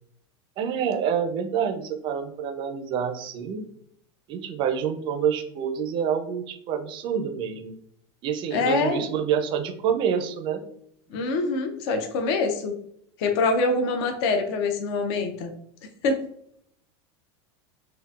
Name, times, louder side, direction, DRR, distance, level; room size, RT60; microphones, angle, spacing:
voice 1, 0.6-3.6 4.3-7.7 8.2-10.6 11.1-11.2, right 7 dB, 35° right, 7 dB, 0.4 m, -27 dB
voice 2, 8.5-9.0 11.1-12.7 13.2-15.5 16.0-16.2, left 3 dB, 60° left, 5 dB, 0.5 m, -25 dB
3.7 x 2.5 x 2.3 m, 0.69 s
supercardioid pair, 140°, 15 cm